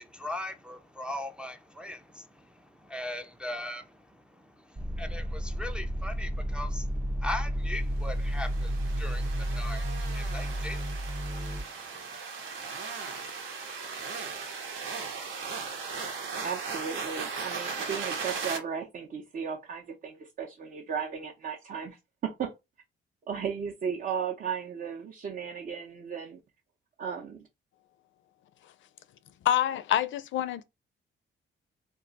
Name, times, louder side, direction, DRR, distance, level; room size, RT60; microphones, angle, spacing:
voice 1, 0.0-12.1, left 1 dB, 5° right, 0.3 m, -40 dB
sound 1, 4.8-11.6, equal, 25° right, 0.9 m, -32 dB
sound 2, 8.1-18.6, right 5 dB, 80° right, 1.0 m, -37 dB
voice 2, 16.4-22.5 23.3-26.4 27.0-27.5, right 7 dB, 45° right, 0.6 m, -35 dB
voice 3, 29.4-30.6, left 11 dB, 70° left, 0.4 m, -26 dB
2.3 x 2.2 x 3.8 m
cardioid pair, 120°, 20 cm